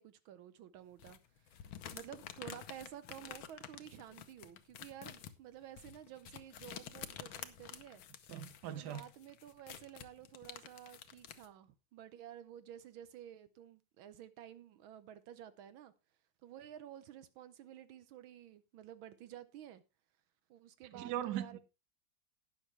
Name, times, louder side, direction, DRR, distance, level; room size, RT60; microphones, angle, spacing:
voice 1, 0.0-8.0 8.7-15.9 16.4-19.8 20.5-21.6, right 11 dB, 80° right, 1.5 m, -52 dB
sound 1, 1.0-11.5, left 10 dB, 80° left, 1.8 m, -50 dB
voice 2, 8.3-9.0 20.9-21.6, right 11 dB, 60° right, 1.4 m, -39 dB
19.0 x 6.4 x 3.2 m
omnidirectional pair, 2.2 m